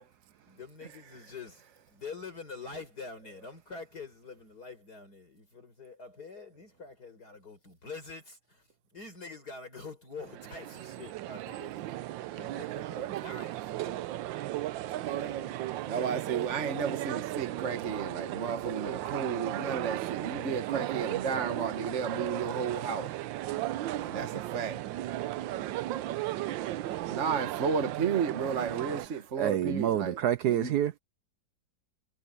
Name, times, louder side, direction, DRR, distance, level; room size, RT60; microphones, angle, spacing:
voice 1, 0.5-12.0 12.3-14.1 14.8-16.3, left 4 dB, 55° left, 5.7 m, -46 dB
sound 1, 10.2-29.1, right 14 dB, 90° right, 1.4 m, -35 dB
voice 2, 15.0-15.4 15.9-23.1 24.0-24.8 27.1-30.2 30.5-30.7, right 6 dB, 45° right, 1.5 m, -33 dB
voice 3, 29.4-30.9, right 11 dB, 70° right, 1.0 m, -27 dB
omnidirectional pair, 2.0 m